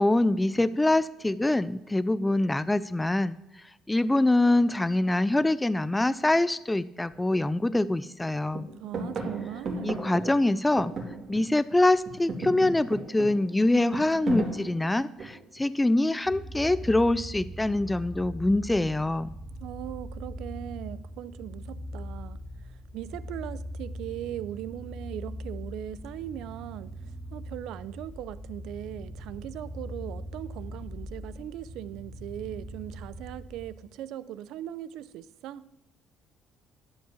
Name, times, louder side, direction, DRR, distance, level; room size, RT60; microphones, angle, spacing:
voice 1, 0.0-3.4 3.9-8.7 9.8-10.9 11.3-19.3, left 2 dB, 10° left, 0.3 m, -24 dB
sound 1, 7.1-7.2 7.7-8.2 8.5-11.7 12.0-15.6 16.5-17.0, right 2 dB, 40° right, 2.5 m, -36 dB
voice 2, 8.8-10.0 19.6-22.4 22.6-26.9 27.3-35.7, right 12 dB, 80° right, 0.5 m, -39 dB
sound 2, 16.2-33.8, equal, 35° left, 2.1 m, -41 dB
11.5 x 5.2 x 8.3 m
cardioid pair, 125°, 0 cm